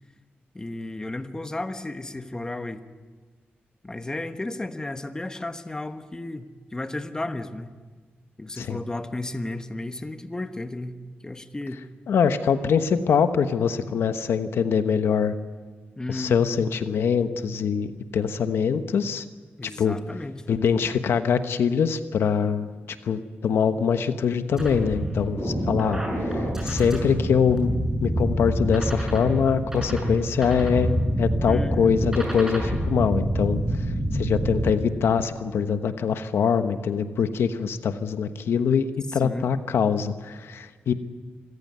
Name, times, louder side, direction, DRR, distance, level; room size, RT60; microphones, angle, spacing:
voice 1, 0.5-2.8 3.8-7.7 8.4-11.8 16.0-16.6 19.6-20.6 31.5-32.0 39.1-39.4, left 2 dB, 15° left, 8 dB, 1.3 m, -33 dB
voice 2, 12.1-15.3 16.1-19.2 19.6-20.0 20.5-22.7 23.0-27.7 28.0-33.6 34.1-40.9, left 6 dB, 90° left, 10 dB, 1.2 m, -23 dB
sound 1, 24.6-34.7, right 1 dB, 10° right, 6.7 m, -27 dB
25.5 x 15.0 x 9.5 m, 1.4 s
wide cardioid pair, 110°, 4 cm